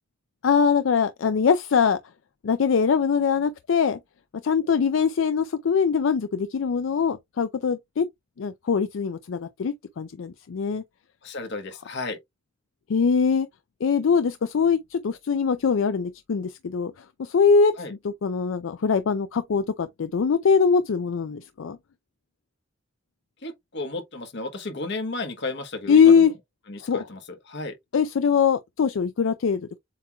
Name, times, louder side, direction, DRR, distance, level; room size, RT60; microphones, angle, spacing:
voice 1, 0.4-2.0 2.4-4.0 4.4-8.1 8.4-10.8 12.9-13.5 13.8-16.9 17.2-17.7 18.0-21.8 25.9-26.3 26.8-27.0 27.9-29.7, left 6 dB, 80° left, 0.4 m, -22 dB
voice 2, 11.2-12.2 17.8-17.9 23.4-26.3 26.7-27.7, left 2 dB, 65° left, 1.2 m, -33 dB
7.5 x 3.0 x 2.3 m
head